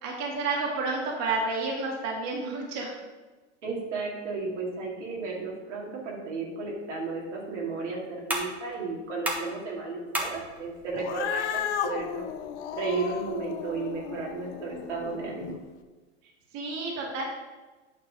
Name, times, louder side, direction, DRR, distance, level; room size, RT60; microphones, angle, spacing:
voice 1, 0.0-2.9 16.5-17.2, right 3 dB, 50° right, -2 dB, 2.0 m, -30 dB
voice 2, 3.6-12.3 12.7-15.6, right 4 dB, 80° right, -3 dB, 2.4 m, -34 dB
sound 1, 6.8-13.8, right 1 dB, 5° right, 1.5 m, -39 dB
Cat, 10.9-15.6, left 9 dB, 70° left, 0.7 m, -34 dB
9.0 x 3.7 x 6.4 m, 1.2 s
hypercardioid pair, 100°, 36 cm